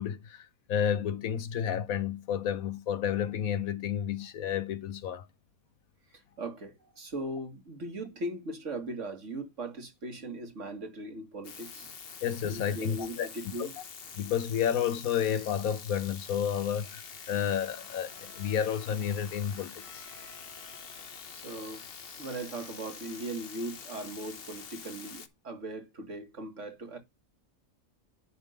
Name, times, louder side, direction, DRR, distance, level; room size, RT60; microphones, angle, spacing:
voice 1, 0.0-5.3 12.2-13.3 13.6-13.7 14.2-20.0, left 9 dB, 85° left, 1.3 m, -31 dB
voice 2, 6.1-11.9 12.5-13.8 21.3-21.8 22.2-27.0, right 1 dB, 60° right, 2.5 m, -39 dB
sound 1, 11.4-25.3, left 6 dB, 45° left, 1.1 m, -46 dB
Bowed string instrument, 16.7-21.4, left 2 dB, 75° right, 3.6 m, -58 dB
11.0 x 3.7 x 5.1 m
omnidirectional pair, 1.4 m